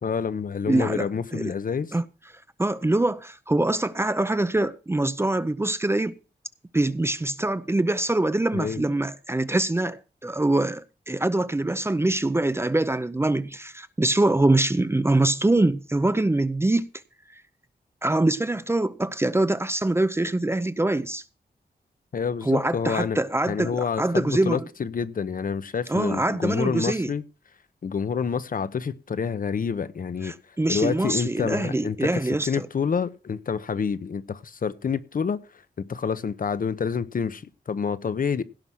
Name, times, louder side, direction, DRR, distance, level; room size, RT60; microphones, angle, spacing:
voice 1, 0.0-1.9 8.5-8.8 22.1-23.2 23.5-27.2 27.8-30.3 30.7-35.4 35.8-38.4, left 6 dB, 55° left, 0.8 m, -28 dB
voice 2, 0.7-1.5 1.9-2.0 2.6-6.1 6.7-16.9 18.0-21.2 22.4-24.7 25.9-27.1 30.2-32.5, right 2 dB, 15° right, 0.6 m, -24 dB
16.5 x 5.7 x 6.2 m
wide cardioid pair, 165°, 17 cm